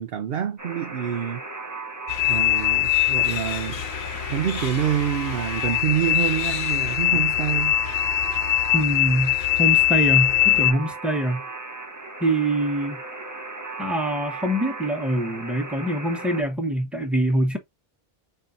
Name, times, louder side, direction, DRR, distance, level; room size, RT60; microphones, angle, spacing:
voice 1, 0.0-1.4 2.3-3.8 4.3-7.8, right 10 dB, 70° right, 0.8 m, -26 dB
Alarm, 0.6-16.4, right 3 dB, 20° right, 0.8 m, -37 dB
sound 1, 2.1-10.7, left 14 dB, 70° left, 0.8 m, -22 dB
voice 2, 8.7-11.4 12.2-12.9 13.8-17.6, right 1 dB, ahead, 1.2 m, -24 dB
5.6 x 3.8 x 2.5 m
omnidirectional pair, 1.0 m